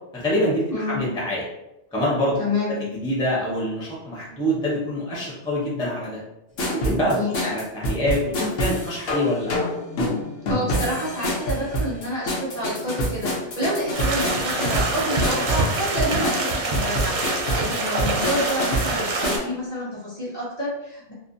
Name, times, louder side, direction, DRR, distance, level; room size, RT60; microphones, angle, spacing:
voice 1, 0.1-1.4 1.9-2.4 3.0-6.2 6.7-7.2 7.4-9.5, equal, 5° left, -6 dB, 0.4 m, -25 dB
voice 2, 0.7-1.0 2.4-2.8 7.1-7.5 10.5-21.1, equal, 40° left, -6 dB, 0.8 m, -28 dB
sound 1, 6.6-19.5, equal, 70° left, 0.9 m, -27 dB
sound 2, 13.9-19.4, right 2 dB, 60° right, 0.5 m, -25 dB
2.5 x 2.1 x 2.5 m, 0.88 s
omnidirectional pair, 1.1 m